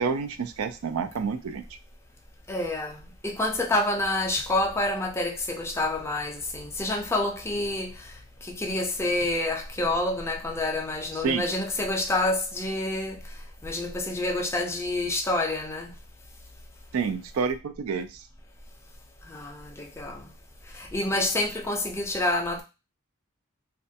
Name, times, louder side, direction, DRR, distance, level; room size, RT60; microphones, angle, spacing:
voice 1, 0.0-1.6 11.2-11.4 16.9-18.3, right 5 dB, 90° right, 0.4 m, -28 dB
voice 2, 2.5-3.0 3.2-7.9 8.5-13.2 13.6-15.9 19.3-20.3 20.7-22.6, left 2 dB, 15° left, 0.4 m, -28 dB
2.4 x 2.2 x 2.6 m
head